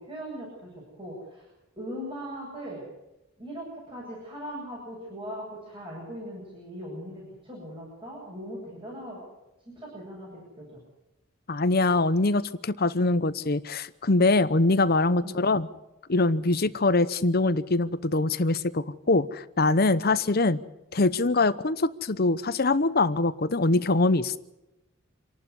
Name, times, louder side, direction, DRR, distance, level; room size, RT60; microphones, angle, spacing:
voice 1, 0.0-1.5 1.8-2.9 3.4-9.2 9.6-10.8 15.2-15.5 19.9-20.1, equal, 25° right, -4 dB, 7.9 m, -40 dB
voice 2, 11.5-15.7 16.1-20.6 20.9-24.4, left 2 dB, 45° left, 14 dB, 0.8 m, -23 dB
27.5 x 11.5 x 9.8 m, 0.97 s
head